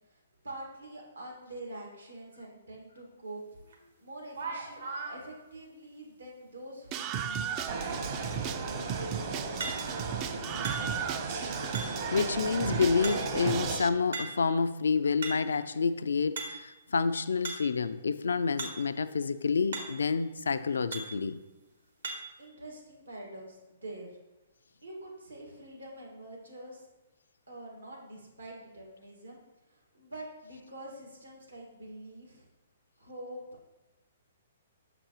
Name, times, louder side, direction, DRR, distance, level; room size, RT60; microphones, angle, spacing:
voice 1, 0.0-3.4 4.0-10.4 22.4-24.1 24.8-26.9 27.5-29.4 29.7-32.5 33.0-33.4, right 1 dB, 90° right, 1.8 m, -46 dB
sound 1, 3.7-3.8 4.3-5.2 9.6-10.1 10.6-11.2 11.7-12.2 13.0-13.5 14.1-14.5 15.0-15.6 16.4-16.8 17.4-17.8 18.6-18.9 19.2-19.3 19.7-20.1 20.9-21.2 22.0-22.4, right 3 dB, 70° right, 1.2 m, -39 dB
Screaming, 6.9-13.9, right 8 dB, 30° right, 0.4 m, -36 dB
sound 2, 7.7-13.8, right 4 dB, 50° right, 1.0 m, -35 dB
voice 2, 12.1-21.4, left 5 dB, 75° left, 0.3 m, -29 dB
6.5 x 6.0 x 3.0 m
figure-of-eight pair, 125°, 0 cm